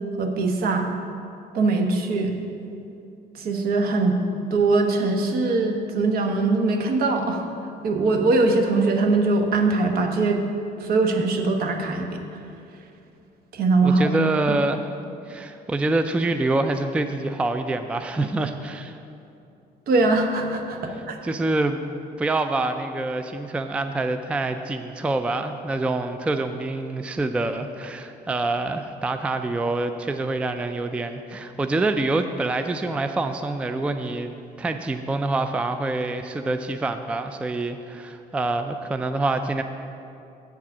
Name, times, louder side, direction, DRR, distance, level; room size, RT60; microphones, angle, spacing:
voice 1, 0.2-0.9 1.5-2.3 3.3-4.2 4.5-7.5 7.8-10.4 10.8-12.2 13.5-14.1 14.5-14.6 19.9-21.2, right 3 dB, 65° right, 4 dB, 1.0 m, -21 dB
voice 2, 13.8-14.9 15.3-19.0 21.2-21.8 22.2-39.6, right 2 dB, 5° right, 8 dB, 0.3 m, -26 dB
7.8 x 4.7 x 7.2 m, 2.7 s
cardioid pair, 110°, 17 cm